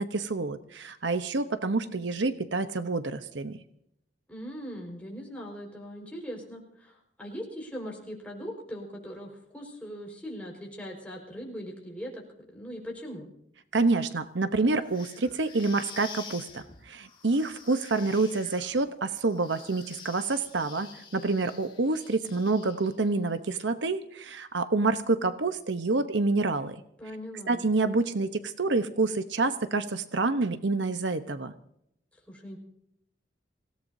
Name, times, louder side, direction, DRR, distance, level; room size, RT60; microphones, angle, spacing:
voice 1, 0.0-3.6 13.7-26.8 27.5-31.5, right 3 dB, 75° right, 10 dB, 0.9 m, -28 dB
voice 2, 4.3-12.2 12.5-13.3 27.0-27.7 32.3-32.6, equal, 5° left, -1 dB, 4.9 m, -40 dB
sound 1, 14.8-23.1, left 5 dB, 25° left, 2.1 m, -48 dB
26.0 x 17.0 x 2.7 m, 0.72 s
head